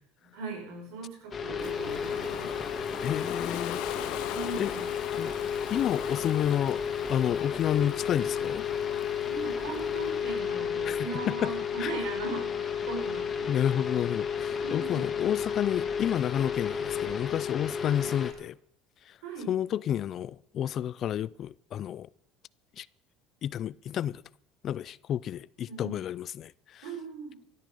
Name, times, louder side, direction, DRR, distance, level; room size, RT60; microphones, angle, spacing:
voice 1, 0.3-2.6 4.3-4.9 7.7-8.2 9.3-13.7 13.9-14.1 14.6-15.1 17.8-18.1 19.2-19.5 25.7-26.0 26.8-27.4, right 4 dB, 80° right, 5.9 m, -40 dB
sound 1, 1.3-18.3, left 7 dB, 30° left, 2.2 m, -32 dB
Ocean, 1.6-10.4, left 17 dB, 75° left, 0.7 m, -41 dB
voice 2, 3.0-3.8 4.2-4.7 5.2-5.4 5.7-6.8 7.1-8.6 10.8-11.5 11.8-11.9 13.5-18.6 19.1-19.2 19.5-22.1 22.8-22.9 23.4-24.2 24.6-26.8, left 10 dB, 50° left, 0.4 m, -30 dB
15.0 x 12.5 x 5.5 m
supercardioid pair, 105°, 0 cm